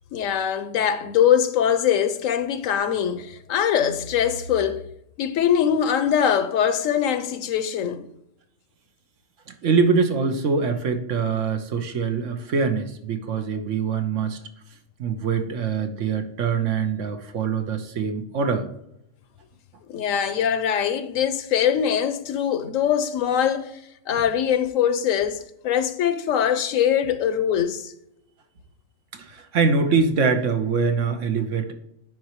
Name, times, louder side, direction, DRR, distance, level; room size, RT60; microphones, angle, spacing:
voice 1, 0.1-4.8 5.2-8.1 19.9-23.8 24.1-27.9, left 9 dB, 90° left, 1.1 m, -22 dB
voice 2, 9.5-14.4 15.0-18.7 29.1-31.7, right 5 dB, 70° right, 1.2 m, -24 dB
10.5 x 4.4 x 3.0 m
omnidirectional pair, 1.3 m